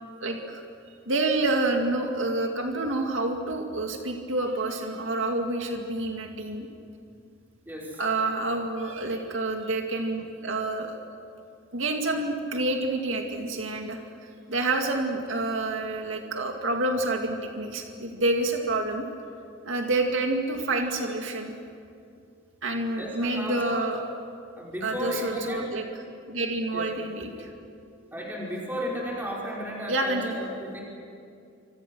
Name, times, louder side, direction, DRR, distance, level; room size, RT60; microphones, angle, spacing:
voice 1, 0.2-0.6 1.1-6.7 8.0-11.0 11.7-19.1 19.6-21.5 22.6-24.0 24.8-25.8 26.3-27.5 29.9-30.5, right 2 dB, 75° right, 2 dB, 2.3 m, -28 dB
voice 2, 7.6-8.0 23.0-23.9 24.5-25.6 26.7-26.9 28.1-30.8, equal, 10° right, -4 dB, 5.1 m, -34 dB
28.5 x 26.0 x 6.3 m, 2.4 s
head